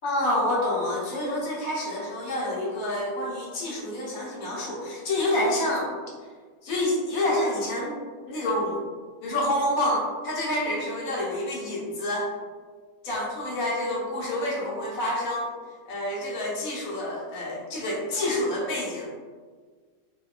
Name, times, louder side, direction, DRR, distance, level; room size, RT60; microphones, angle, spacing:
voice 1, 0.0-5.9 6.6-8.0 8.3-8.8 9.2-12.3 13.0-15.5 15.9-19.1, left 1 dB, 70° left, -4 dB, 1.1 m, -28 dB
2.7 x 2.1 x 2.3 m, 1.5 s
omnidirectional pair, 1.6 m